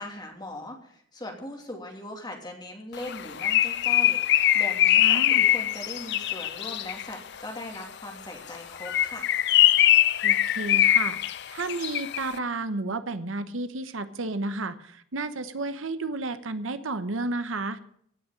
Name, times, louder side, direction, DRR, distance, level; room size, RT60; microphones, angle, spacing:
voice 1, 0.0-9.3, left 1 dB, 20° left, 2 dB, 2.8 m, -40 dB
Bird, 3.0-7.1 8.7-12.3, left 13 dB, 55° left, 0.5 m, -22 dB
voice 2, 5.0-5.4 10.2-11.2 11.5-17.8, right 2 dB, 75° right, 11 dB, 1.0 m, -32 dB
16.5 x 6.4 x 9.5 m, 0.67 s
head